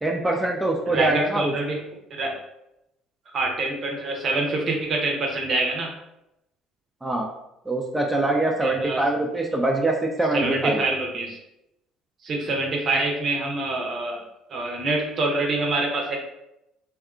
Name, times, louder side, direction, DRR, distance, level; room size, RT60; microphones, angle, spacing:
voice 1, 0.0-1.5 7.0-7.3 7.7-10.8, right 2 dB, 10° right, 0 dB, 0.4 m, -23 dB
voice 2, 0.9-1.8 2.1-2.4 3.3-5.9 8.6-9.0 10.3-11.4 12.2-14.2 14.5-16.2, right 2 dB, 50° right, 0 dB, 0.7 m, -26 dB
2.7 x 2.3 x 2.4 m, 0.85 s
hypercardioid pair, 65°, 0 cm